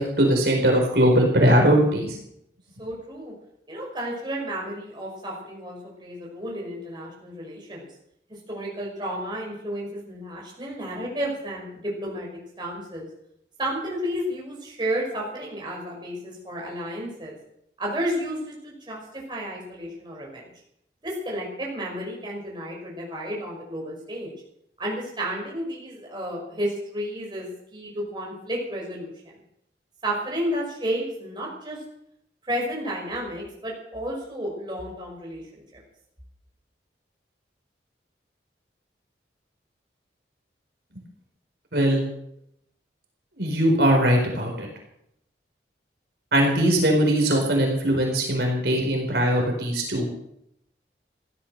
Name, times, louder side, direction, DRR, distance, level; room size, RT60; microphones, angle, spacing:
voice 1, 0.0-2.1 41.7-42.0 43.4-44.7 46.3-50.1, equal, 65° right, 1 dB, 4.3 m, -20 dB
voice 2, 2.8-3.3 3.7-7.9 8.3-12.3 12.6-13.1 13.6-17.3 17.8-20.5 21.0-24.3 24.8-29.3 30.0-31.8 32.5-35.8, equal, 25° right, -2 dB, 5.6 m, -32 dB
16.0 x 13.0 x 6.6 m, 0.75 s
head